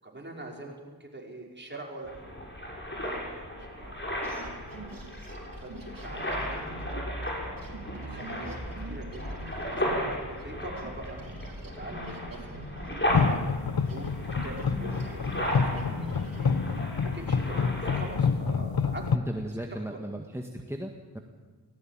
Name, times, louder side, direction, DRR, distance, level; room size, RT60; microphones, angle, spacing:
voice 1, 0.0-2.3 3.0-4.1 4.6-11.2 11.6-19.1 19.7-20.0, right 2 dB, 25° right, -1 dB, 5.5 m, -44 dB
sound 1, 2.1-18.2, equal, 25° left, 6.7 m, -35 dB
sound 2, 4.2-10.5 10.8-17.0, right 1 dB, 55° right, 4.3 m, -45 dB
sound 3, 13.1-19.2, left 5 dB, 60° left, 1.1 m, -28 dB
voice 2, 19.1-21.2, right 1 dB, 5° right, 4 dB, 1.7 m, -36 dB
18.0 x 18.0 x 9.0 m, 1.5 s
cardioid pair, 60°, 41 cm